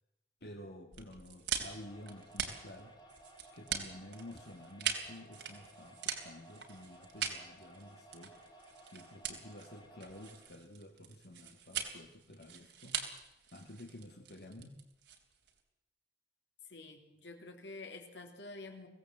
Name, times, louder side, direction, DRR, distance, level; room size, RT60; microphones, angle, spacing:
voice 1, 0.4-2.9 3.5-8.3 8.9-13.0 13.5-14.8, left 1 dB, 65° left, 2 dB, 2.0 m, -51 dB
sound 1, 0.9-15.6, right 8 dB, 85° right, 3.3 m, -42 dB
sound 2, 1.6-10.4, right 1 dB, 25° left, 3.1 m, -58 dB
voice 2, 16.7-18.9, left 3 dB, 85° left, 4 dB, 3.4 m, -48 dB
23.5 x 17.0 x 7.8 m, 0.92 s
head